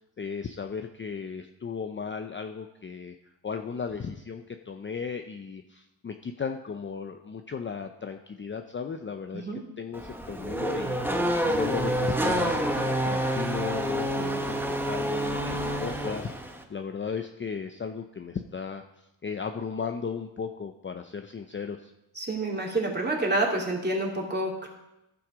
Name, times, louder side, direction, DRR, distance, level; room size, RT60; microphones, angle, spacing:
voice 1, 0.2-3.1 3.4-9.5 9.8-12.6 13.0-16.3 16.7-21.9, left 5 dB, 25° left, 6 dB, 0.6 m, -35 dB
Race car auto racing / Accelerating revving vroom, 9.9-16.6, right 1 dB, 5° right, 1.2 m, -28 dB
voice 2, 22.1-24.7, right 2 dB, 20° right, -1 dB, 2.8 m, -28 dB
14.5 x 5.9 x 5.0 m, 0.91 s
cardioid pair, 90°, 45 cm